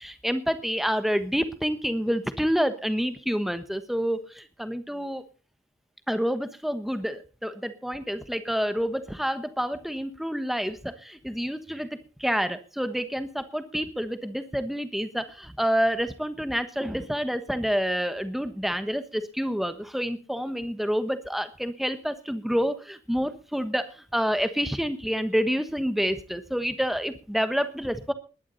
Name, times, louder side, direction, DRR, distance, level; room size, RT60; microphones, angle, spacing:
voice 1, 0.0-5.2 6.1-11.9 12.2-28.1, equal, ahead, 10 dB, 1.2 m, -28 dB
20.5 x 11.0 x 4.1 m, 0.35 s
head